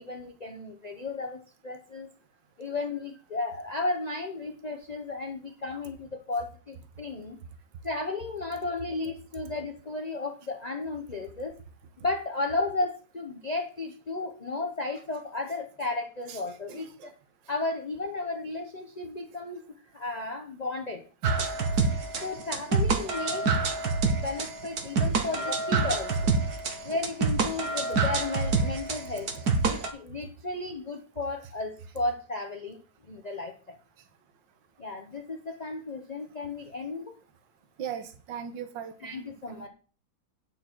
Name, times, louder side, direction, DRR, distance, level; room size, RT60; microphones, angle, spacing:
voice 1, 0.0-2.1 2.6-7.4 7.8-11.5 12.0-17.1 17.5-21.0 22.2-23.5 24.2-26.3 26.8-29.3 29.6-33.8 34.8-37.1 39.0-39.7, left 3 dB, 55° left, 2 dB, 0.4 m, -34 dB
voice 2, 16.7-17.1 37.8-39.7, right 8 dB, 70° right, 8 dB, 1.8 m, -39 dB
sound 1, 21.2-29.9, right 4 dB, 55° right, 1.7 m, -27 dB
8.8 x 7.8 x 4.5 m, 0.39 s
omnidirectional pair, 2.1 m